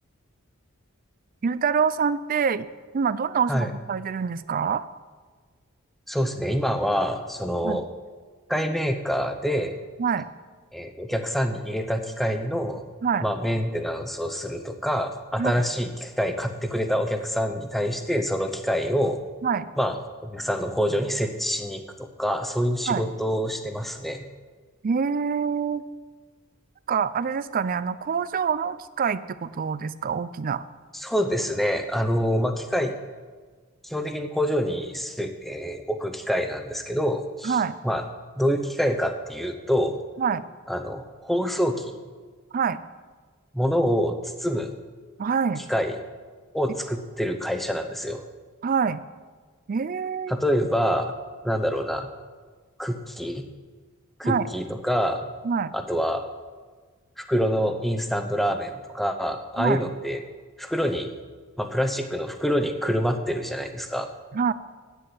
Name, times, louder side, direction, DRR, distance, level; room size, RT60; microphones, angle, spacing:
voice 1, 1.4-2.7 2.9-4.9 7.6-7.8 10.0-10.3 13.0-13.3 15.4-15.6 19.4-19.7 22.9-23.0 24.8-25.8 26.9-30.7 37.4-37.8 40.2-40.4 42.5-42.8 45.2-45.6 48.6-49.0 49.7-50.3 54.2-54.4 55.4-55.7 59.6-59.8 64.3-64.5, right 6 dB, 40° right, 16 dB, 0.4 m, -25 dB
voice 2, 6.1-7.8 8.5-9.7 10.7-12.8 13.2-19.2 19.8-20.0 20.2-24.2 30.9-32.9 33.8-37.6 37.8-38.0 38.4-40.0 40.7-41.9 43.5-44.7 45.7-45.9 46.5-48.2 50.3-51.1 51.4-52.1 52.8-53.4 54.2-55.3 55.7-56.3 57.2-60.2 60.6-61.1 61.6-64.1, equal, ahead, 6 dB, 0.7 m, -26 dB
9.6 x 6.8 x 7.8 m, 1.5 s
head